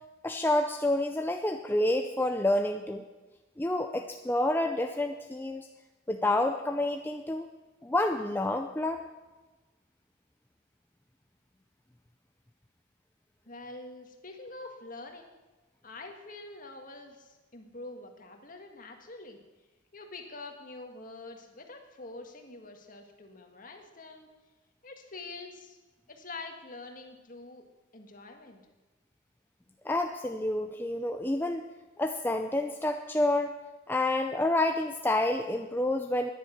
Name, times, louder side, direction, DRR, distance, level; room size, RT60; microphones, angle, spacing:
voice 1, 0.2-3.0 3.6-5.7 6.1-7.5 7.8-9.0 29.8-31.6 32.0-33.6 33.9-36.3, left 1 dB, 10° left, 5 dB, 0.5 m, -28 dB
voice 2, 13.4-15.3 15.8-19.4 19.9-24.3 24.8-25.8 26.1-27.6 27.9-28.6, left 2 dB, 45° left, 4 dB, 1.8 m, -45 dB
10.5 x 10.0 x 9.3 m, 1.2 s
head